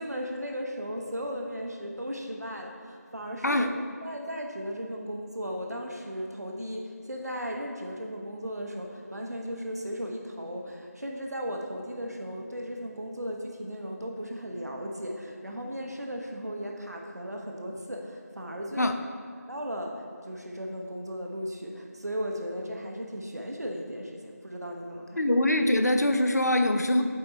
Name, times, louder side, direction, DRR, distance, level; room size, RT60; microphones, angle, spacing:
voice 1, 0.0-3.7 4.0-19.0 19.5-25.2, equal, 70° right, 1 dB, 0.9 m, -36 dB
voice 2, 25.2-27.0, left 1 dB, 75° left, 7 dB, 0.6 m, -23 dB
7.7 x 4.4 x 3.9 m, 2.1 s
figure-of-eight pair, 180°, 9 cm